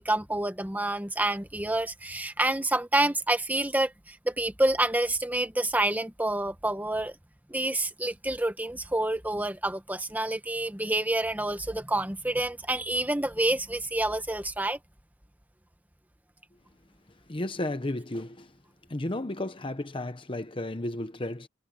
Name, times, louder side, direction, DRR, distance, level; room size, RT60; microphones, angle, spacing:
voice 1, 0.0-7.1 7.5-14.8, right 1 dB, 10° right, 1.2 m, -28 dB
voice 2, 17.3-18.5 18.9-21.5, left 1 dB, 25° left, 0.9 m, -33 dB
head